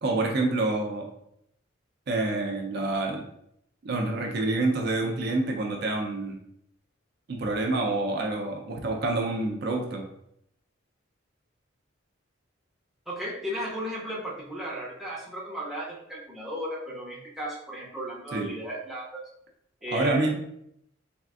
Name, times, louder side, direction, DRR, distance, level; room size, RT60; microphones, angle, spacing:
voice 1, 0.0-1.1 2.1-3.3 3.8-6.4 7.3-10.0 18.3-18.5 19.9-20.3, right 2 dB, 50° right, 1 dB, 0.4 m, -27 dB
voice 2, 13.1-19.2 19.8-20.3, equal, ahead, -6 dB, 0.5 m, -35 dB
3.4 x 2.4 x 2.3 m, 0.75 s
head